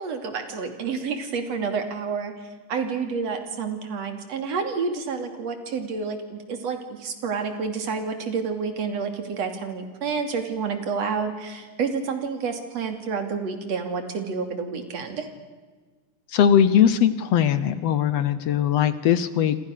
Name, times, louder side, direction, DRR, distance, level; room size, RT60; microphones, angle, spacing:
voice 1, 0.0-15.3, right 5 dB, 55° right, 7 dB, 3.7 m, -29 dB
voice 2, 16.3-19.6, left 9 dB, 70° left, 14 dB, 1.6 m, -20 dB
27.5 x 26.5 x 6.7 m, 1.4 s
omnidirectional pair, 3.7 m